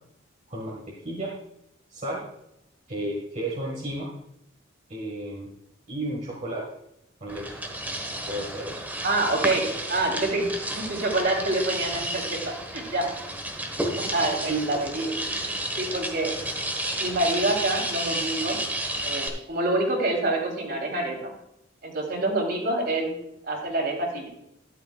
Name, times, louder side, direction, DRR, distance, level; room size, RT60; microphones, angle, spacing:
voice 1, 0.5-1.3 1.9-2.2 2.9-4.1 4.9-5.5 5.9-6.7 7.2-7.6 8.3-8.8 14.5-14.6, right 2 dB, 40° right, -3 dB, 1.8 m, -32 dB
sound 1, 7.3-19.3, right 1 dB, 10° right, 1.3 m, -31 dB
voice 2, 9.0-10.5 10.8-13.1 14.0-15.1 15.8-16.3 17.0-18.6 19.0-21.3 21.8-23.1 23.4-24.3, right 2 dB, 55° right, 0 dB, 3.4 m, -26 dB
13.0 x 11.0 x 2.4 m, 0.82 s
head